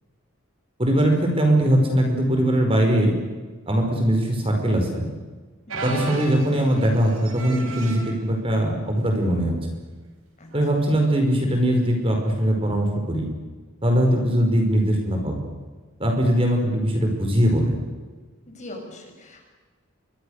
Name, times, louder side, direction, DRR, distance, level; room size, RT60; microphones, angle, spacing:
voice 1, 0.8-3.1 3.7-5.0 5.8-9.5 10.5-13.2 13.8-15.4 16.0-17.8, right 1 dB, 25° right, 3 dB, 5.3 m, -21 dB
voice 2, 5.7-6.0 10.4-10.5 18.5-19.4, left 1 dB, 35° left, 2 dB, 6.3 m, -41 dB
sound 1, 5.7-8.2 8.9-9.2 9.5-9.6 10.5-10.8 12.4-12.5, right 3 dB, 85° right, 4.6 m, -35 dB
27.5 x 24.5 x 6.7 m, 1.4 s
head